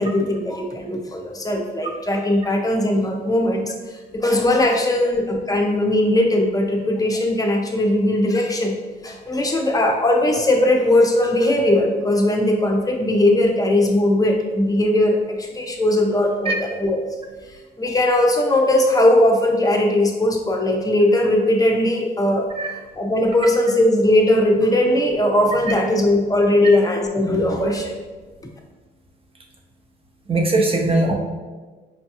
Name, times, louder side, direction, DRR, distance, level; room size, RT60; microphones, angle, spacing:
voice 1, 0.0-3.7 4.2-8.8 9.0-17.0 17.8-22.5 23.0-28.0, left 1 dB, 20° left, 2 dB, 0.6 m, -19 dB
voice 2, 30.3-31.1, right 2 dB, 30° right, 1 dB, 0.7 m, -19 dB
5.4 x 2.2 x 2.8 m, 1.3 s
cardioid pair, 90°, 20 cm